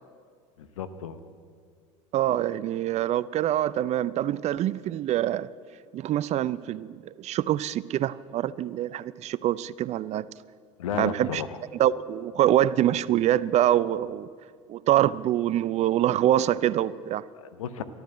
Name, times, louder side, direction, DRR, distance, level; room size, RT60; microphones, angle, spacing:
voice 1, 0.6-1.2 10.8-11.6 17.3-17.8, left 8 dB, 85° left, 11 dB, 0.9 m, -33 dB
voice 2, 2.1-5.5 5.9-10.3 11.0-11.4 11.8-14.3 14.7-17.2, right 12 dB, 45° right, 19 dB, 0.5 m, -25 dB
13.0 x 12.0 x 7.9 m, 2.1 s
hypercardioid pair, 75°, 17 cm